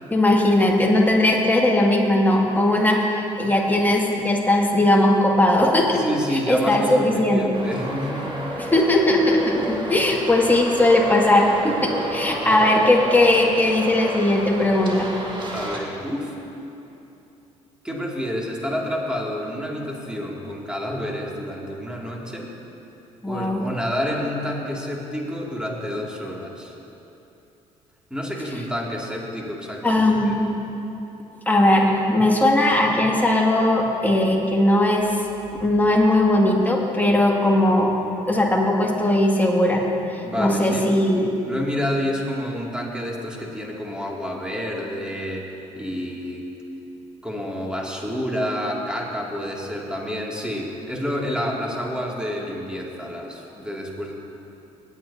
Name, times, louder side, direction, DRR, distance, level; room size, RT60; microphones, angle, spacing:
voice 1, 0.1-6.0 6.3-7.6 8.6-15.1 23.2-23.6 29.8-30.6 31.5-35.2 35.6-37.9 38.3-39.8 40.1-41.3, left 1 dB, 10° left, -2 dB, 2.3 m, -19 dB
voice 2, 6.0-8.4 15.5-16.3 17.8-22.5 23.3-26.7 28.1-30.4 40.2-40.9 41.4-45.5 45.8-46.5 47.2-54.1, equal, 5° right, -2 dB, 2.5 m, -29 dB
Traffic noise roadway noise, 7.5-15.8, right 1 dB, 30° right, 2.0 m, -31 dB
18.0 x 9.6 x 2.8 m, 3.0 s
hypercardioid pair, 55°, 16 cm